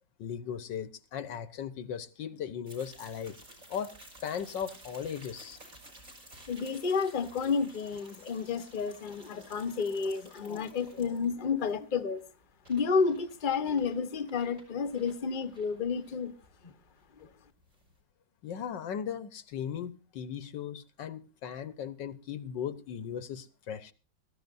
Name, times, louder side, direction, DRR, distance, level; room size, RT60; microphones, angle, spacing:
voice 1, 0.2-3.4 3.7-4.0 4.2-5.6 18.4-23.9, left 8 dB, 75° left, 1.7 m, -37 dB
sound 1, 2.7-18.0, right 1 dB, 45° right, 5.0 m, -54 dB
voice 2, 6.5-12.2 12.7-16.3 16.6-16.7, left 5 dB, 30° left, 1.2 m, -31 dB
22.5 x 14.0 x 2.6 m
omnidirectional pair, 2.0 m